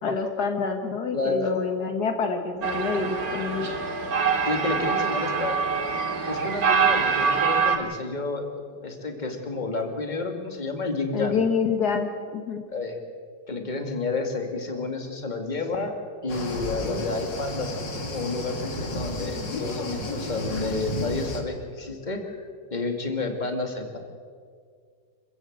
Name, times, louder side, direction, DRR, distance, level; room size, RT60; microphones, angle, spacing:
voice 1, 0.0-3.7 11.1-12.6, left 5 dB, 65° left, 5 dB, 1.9 m, -27 dB
voice 2, 1.1-1.6 4.5-5.6 6.3-8.4 8.8-11.4 12.7-13.0 13.5-15.9 16.2-24.0, left 3 dB, 25° left, 5 dB, 2.3 m, -30 dB
sound 1, 2.6-7.8, right 6 dB, 55° right, 2.4 m, -25 dB
sound 2, 16.3-21.4, left 1 dB, 80° left, 3.0 m, -32 dB
27.5 x 14.5 x 7.9 m, 2.1 s
omnidirectional pair, 1.9 m